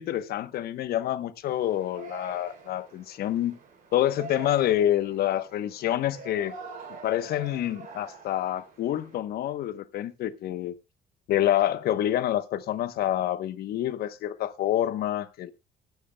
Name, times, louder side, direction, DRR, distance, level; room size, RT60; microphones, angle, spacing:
voice 1, 0.0-3.6 3.9-6.5 7.0-10.7 11.3-15.5, left 12 dB, 65° left, 0.9 m, -27 dB
Yell, 1.4-9.1, right 4 dB, 55° right, 3.4 m, -45 dB
22.0 x 9.4 x 2.2 m
cardioid pair, 110°, 17 cm